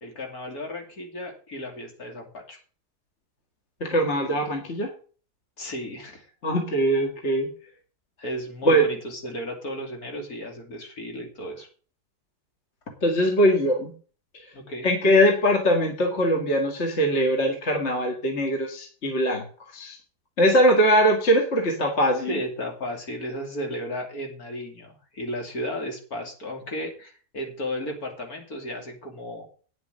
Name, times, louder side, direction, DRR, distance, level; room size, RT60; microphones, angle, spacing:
voice 1, 0.0-2.6 5.6-6.2 8.2-11.7 14.5-14.9 22.3-29.5, equal, 60° left, 2 dB, 3.2 m, -34 dB
voice 2, 3.8-4.9 6.4-7.5 8.7-8.9 13.0-13.9 14.8-19.4 19.7-20.0 20.4-22.4, equal, 40° left, 2 dB, 2.0 m, -21 dB
9.6 x 7.5 x 6.5 m, 0.40 s
omnidirectional pair, 1.8 m